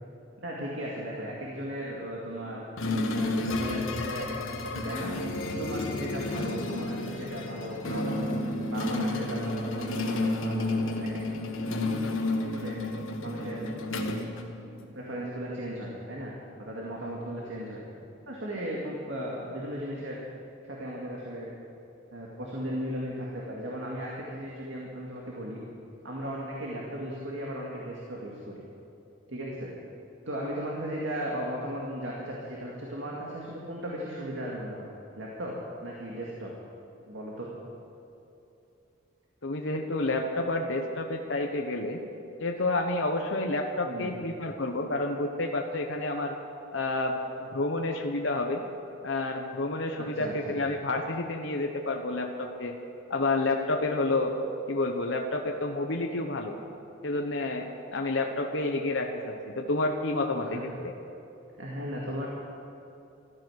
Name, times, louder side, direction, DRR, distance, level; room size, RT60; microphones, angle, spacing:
voice 1, 0.4-2.6 3.1-5.1 5.6-11.1 12.4-12.8 13.2-13.7 14.6-14.7 14.9-17.9 18.3-20.2 20.6-21.5 22.1-25.6 26.0-28.6 29.3-29.7 30.3-34.9 35.2-35.5 35.8-36.5 37.1-37.5 43.8-44.2 50.0-50.6 60.4-60.6 61.6-62.3, equal, 70° right, -4 dB, 2.3 m, -36 dB
sound 1, 2.8-15.0, left 2 dB, 90° left, 1.5 m, -31 dB
voice 2, 39.4-42.0 42.4-46.3 46.7-48.6 49.0-52.7 53.1-54.3 54.7-56.5 57.0-60.9, left 2 dB, 70° left, 3 dB, 1.0 m, -29 dB
15.5 x 13.5 x 6.4 m, 2.8 s
head